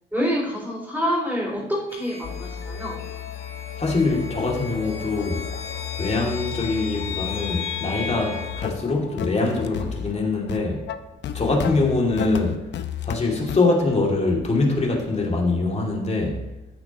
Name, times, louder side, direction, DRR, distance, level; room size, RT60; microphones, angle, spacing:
voice 1, 0.1-3.0, equal, 5° right, 3.7 m, -26 dB
sound 1, 1.9-8.6, left 6 dB, 80° left, 1.4 m, -36 dB
sound 2, 2.2-13.2 13.5-13.6, left 9 dB, 65° left, 0.7 m, -33 dB
voice 2, 3.8-5.5 6.0-10.8 11.3-12.6 13.0-16.5, left 3 dB, 35° left, 2.6 m, -23 dB
13.5 x 8.6 x 3.0 m
cardioid pair, 90°, 20 cm